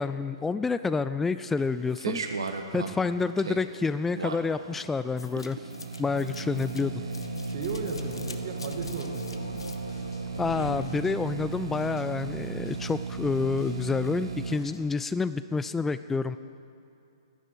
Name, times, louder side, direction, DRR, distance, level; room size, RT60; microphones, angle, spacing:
voice 1, 0.0-2.2 2.7-5.6 6.0-7.0 10.4-16.4, left 4 dB, 10° left, 13 dB, 0.3 m, -28 dB
sound 1, 1.6-14.6, right 5 dB, 75° right, 1.3 m, -36 dB
sound 2, 5.2-11.5, left 3 dB, 90° left, 1.1 m, -40 dB
voice 2, 7.4-9.6, right 5 dB, 50° right, 4 dB, 1.9 m, -36 dB
sound 3, 7.6-14.8, left 3 dB, 70° left, 2.4 m, -48 dB
13.0 x 11.0 x 8.3 m, 2.6 s
hypercardioid pair, 125°, 3 cm